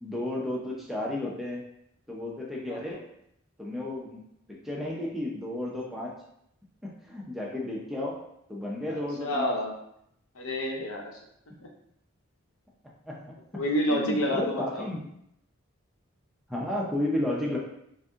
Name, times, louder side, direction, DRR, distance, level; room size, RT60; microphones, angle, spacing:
voice 1, 0.0-1.6 2.1-3.1 3.6-4.2 4.5-6.2 6.8-9.5 13.1-13.4 13.9-15.0 16.5-17.6, left 1 dB, ahead, -4 dB, 0.6 m, -33 dB
voice 2, 8.9-9.7 10.3-11.0 11.6-11.7 13.5-14.9, equal, 90° left, 1 dB, 0.8 m, -29 dB
4.0 x 2.7 x 3.6 m, 0.74 s
head